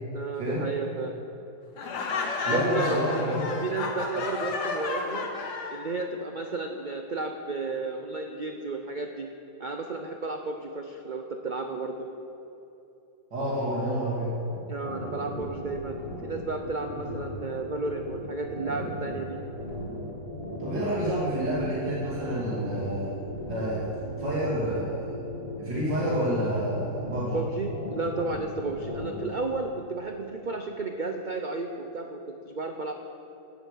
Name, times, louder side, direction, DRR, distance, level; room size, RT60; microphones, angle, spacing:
voice 1, 0.1-1.2 2.5-3.4 3.6-5.3 5.7-9.3 9.6-12.1 14.7-19.4 27.3-32.2 32.4-32.9, right 3 dB, 55° right, 4 dB, 0.5 m, -33 dB
Laughter, 1.8-5.8, left 4 dB, 70° left, 1.8 m, -31 dB
voice 2, 2.5-3.4 13.3-14.3 20.6-23.1 23.5-23.9 24.2-25.1 25.6-27.4, right 1 dB, 80° right, -7 dB, 3.1 m, -29 dB
sound 1, 14.5-29.2, equal, 15° right, 3.9 m, -37 dB
15.0 x 8.1 x 8.5 m, 2.9 s
omnidirectional pair, 1.9 m